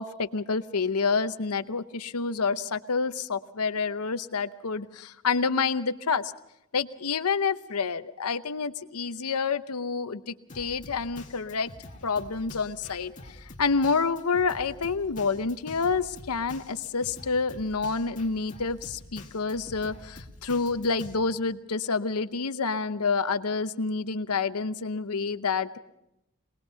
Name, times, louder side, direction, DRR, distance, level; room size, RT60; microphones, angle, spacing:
voice 1, 0.0-6.2 6.7-11.7 12.0-13.1 13.6-25.8, left 4 dB, 85° left, 12 dB, 0.8 m, -28 dB
Drum kit, 10.5-21.2, left 2 dB, 35° left, 2.1 m, -46 dB
23.0 x 20.0 x 5.7 m, 0.86 s
head